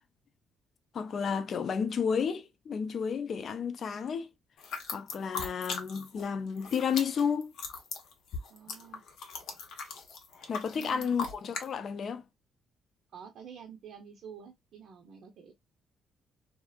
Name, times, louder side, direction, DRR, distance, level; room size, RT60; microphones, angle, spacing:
voice 1, 0.9-4.3 4.9-7.5 10.5-12.2, left 6 dB, 55° left, 0.4 m, -32 dB
sound 1, 4.6-6.2 6.5-11.7, left 5 dB, 80° left, 0.7 m, -39 dB
voice 2, 8.5-9.0 10.8-11.4 13.1-15.5, right 7 dB, 70° right, 0.6 m, -49 dB
2.7 x 2.4 x 2.3 m
cardioid pair, 90°, 0 cm